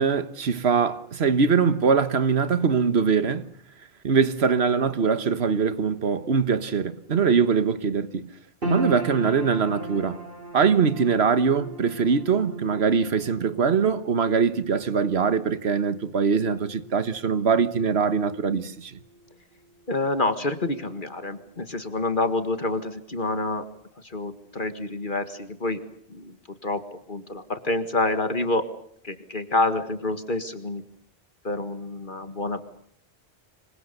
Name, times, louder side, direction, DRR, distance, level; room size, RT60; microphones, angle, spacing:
voice 1, 0.0-3.4 4.0-8.3 8.7-10.2 10.5-19.0, right 5 dB, 85° right, 1.5 m, -22 dB
sound 1, 8.6-21.0 21.3-22.2 22.7-22.8, right 1 dB, 60° right, 4.2 m, -39 dB
voice 2, 19.9-23.6 24.0-25.8 26.1-26.4 26.6-26.8 27.1-28.6 29.0-30.8 31.4-32.6, left 2 dB, 55° left, 1.9 m, -27 dB
26.5 x 24.5 x 6.8 m
omnidirectional pair, 1.0 m